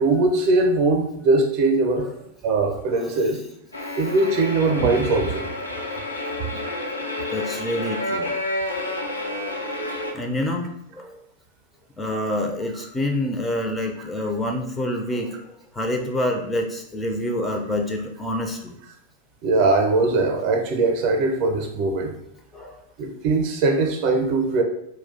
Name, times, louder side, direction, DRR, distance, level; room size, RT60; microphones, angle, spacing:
voice 1, 0.0-2.1 2.4-3.4 4.0-5.4 6.5-6.6 19.4-22.1 23.0-24.6, right 3 dB, 45° right, 4 dB, 0.5 m, -21 dB
sound 1, 3.7-10.1, left 1 dB, 80° left, 0.4 m, -29 dB
voice 2, 7.3-8.3 9.4-9.5 10.1-11.1 12.0-15.5 15.7-18.8 22.5-22.8, left 1 dB, 10° left, 2 dB, 0.4 m, -27 dB
2.3 x 2.1 x 3.7 m, 0.75 s
figure-of-eight pair, 90°, 0 cm